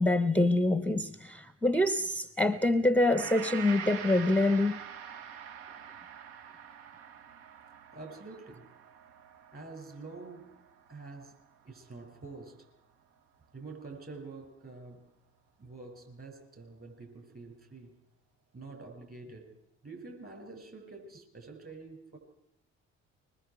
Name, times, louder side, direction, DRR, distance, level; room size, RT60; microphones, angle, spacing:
voice 1, 0.0-4.8, left 2 dB, 5° left, 0.7 m, -26 dB
Gong, 3.1-11.5 11.9-12.0, right 8 dB, 70° right, 0.8 m, -45 dB
voice 2, 7.9-8.7 9.5-10.6 10.9-12.7 13.5-15.1 15.6-17.9 18.5-19.6 19.8-22.2, right 3 dB, 35° right, 7.0 m, -47 dB
24.5 x 23.0 x 4.7 m
figure-of-eight pair, 45°, 37 cm